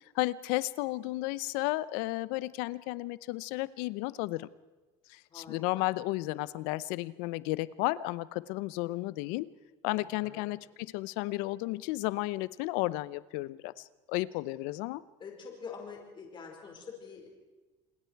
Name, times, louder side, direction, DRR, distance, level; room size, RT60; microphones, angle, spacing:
voice 1, 0.1-4.5 5.1-9.5 9.8-15.0, left 19 dB, 85° left, 19 dB, 0.7 m, -33 dB
voice 2, 5.3-5.9 9.9-10.5 15.2-17.3, left 5 dB, 35° left, 1 dB, 4.9 m, -46 dB
28.0 x 21.0 x 4.7 m, 1.2 s
cardioid pair, 120°, 14 cm